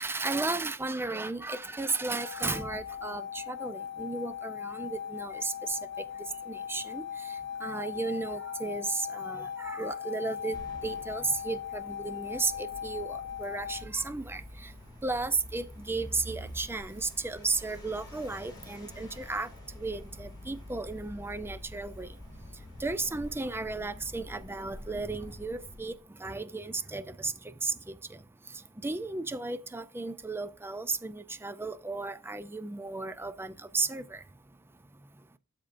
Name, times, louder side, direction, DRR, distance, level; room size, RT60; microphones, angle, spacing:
voice 1, 0.0-5.8 6.5-7.4 7.6-10.6 10.8-14.7 15.0-19.5 19.8-22.1 22.8-27.3 27.6-28.2 28.8-34.2, right 3 dB, 10° right, 0.4 m, -34 dB
sound 1, 2.2-13.8, left 9 dB, 55° left, 0.5 m, -39 dB
sound 2, 10.5-26.0, left 1 dB, 20° left, 3.4 m, -47 dB
12.5 x 4.3 x 2.5 m
head